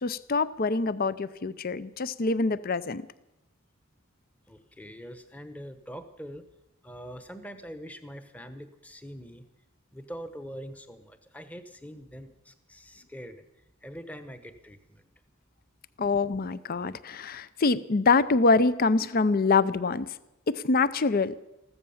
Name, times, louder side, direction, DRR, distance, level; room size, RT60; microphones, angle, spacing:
voice 1, 0.0-3.1 16.0-20.1 20.5-21.3, left 3 dB, 45° left, 17 dB, 0.6 m, -25 dB
voice 2, 4.5-6.5 6.8-9.5 9.9-13.4 13.8-15.1, equal, 5° left, 10 dB, 1.0 m, -43 dB
15.0 x 13.5 x 7.2 m, 0.92 s
head